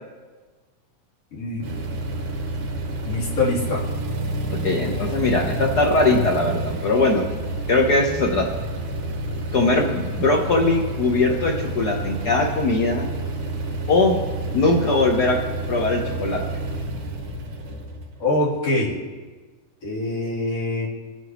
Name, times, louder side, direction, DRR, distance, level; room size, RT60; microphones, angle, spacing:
voice 1, 1.3-1.6 3.0-3.8 18.2-19.0 19.8-20.9, left 2 dB, 50° left, -8 dB, 4.4 m, -24 dB
sound 1, 1.6-18.8, right 1 dB, 70° right, 2.9 m, -29 dB
voice 2, 4.6-7.2 7.7-8.5 9.5-13.1 13.9-14.2 14.5-15.4 15.7-16.4, left 2 dB, 80° left, 0 dB, 0.9 m, -20 dB
25.5 x 9.3 x 3.1 m, 1.4 s
omnidirectional pair, 3.6 m